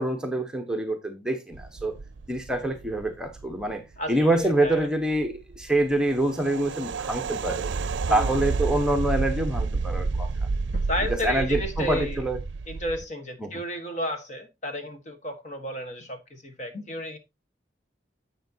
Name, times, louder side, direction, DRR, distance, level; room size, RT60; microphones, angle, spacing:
voice 1, 0.0-1.9 2.3-3.8 4.1-7.7 8.1-10.3 11.1-12.4 13.4-13.5, right 1 dB, 5° right, 1.1 m, -26 dB
sound 1, 1.5-4.2 4.4-4.8 5.1-13.0, right 4 dB, 80° right, 0.5 m, -30 dB
voice 2, 4.0-4.9 8.1-8.4 10.9-12.2 12.7-17.2, left 1 dB, 40° left, 1.5 m, -33 dB
10.0 x 7.5 x 2.8 m
head